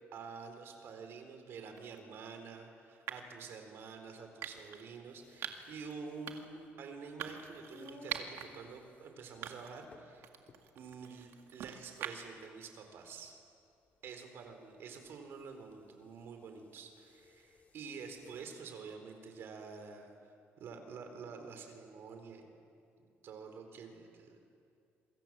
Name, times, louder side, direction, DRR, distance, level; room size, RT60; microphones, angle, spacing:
voice 1, 0.1-10.3 10.7-13.4 14.0-20.3 20.6-22.5 23.2-24.4, right 5 dB, 60° right, 6 dB, 4.0 m, -48 dB
sound 1, 1.8-2.0 3.1-3.4 4.4-4.8 5.4-5.7 6.3-6.6 7.2-8.5 8.9-9.0 9.4-9.9 10.2-12.4, right 10 dB, 80° right, 2.0 m, -44 dB
sound 2, 5.1-18.6, left 3 dB, 35° left, 2.3 m, -62 dB
27.5 x 24.5 x 7.5 m, 2.5 s
cardioid pair, 145°, 4 cm